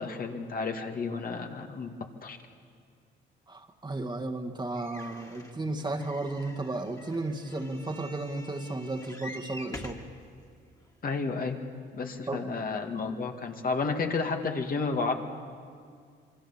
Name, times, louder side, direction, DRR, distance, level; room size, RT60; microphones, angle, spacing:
voice 1, 0.0-1.9 2.2-2.4 11.0-11.6 11.9-15.1, left 4 dB, 45° left, 4 dB, 2.0 m, -31 dB
voice 2, 3.5-10.0 12.3-12.5, right 2 dB, 20° right, 3 dB, 1.8 m, -34 dB
sound 1, 4.7-10.1 10.8-10.9 11.2-11.3, left 1 dB, 15° left, 2.5 m, -46 dB
27.0 x 23.0 x 7.3 m, 2.1 s
cardioid pair, 90°, 20 cm